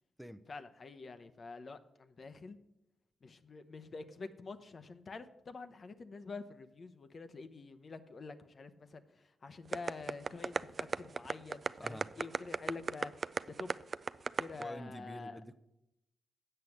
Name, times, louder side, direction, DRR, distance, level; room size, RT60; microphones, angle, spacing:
voice 1, 0.5-2.6 3.2-13.1 13.5-13.7 14.4-15.4, left 3 dB, 50° left, 10 dB, 0.8 m, -47 dB
sound 1, 9.7-14.6, right 5 dB, 50° right, 0.3 m, -34 dB
voice 2, 14.6-15.5, equal, ahead, 9 dB, 0.6 m, -46 dB
7.8 x 6.6 x 7.2 m, 0.86 s
cardioid pair, 60°, 0 cm